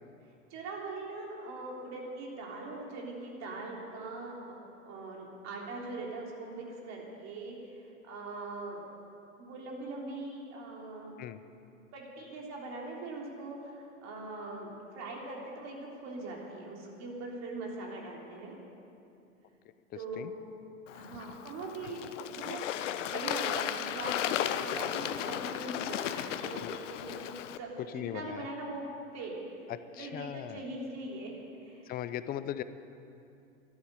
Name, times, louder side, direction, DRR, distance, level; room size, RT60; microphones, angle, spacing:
voice 1, 0.5-4.4 4.8-8.8 9.4-11.1 11.9-18.5 19.9-20.3 20.9-22.6 23.1-27.7 28.1-29.4 29.9-31.4 31.6-31.9, right 2 dB, 40° right, -1 dB, 3.6 m, -41 dB
voice 2, 19.9-20.3 26.6-26.8 27.8-28.5 29.7-30.6 31.9-32.6, left 11 dB, 25° left, 13 dB, 0.5 m, -39 dB
Bird / Water, 20.9-27.6, left 11 dB, 65° left, 0.8 m, -35 dB
13.0 x 11.0 x 8.3 m, 2.6 s
hypercardioid pair, 95°, 40 cm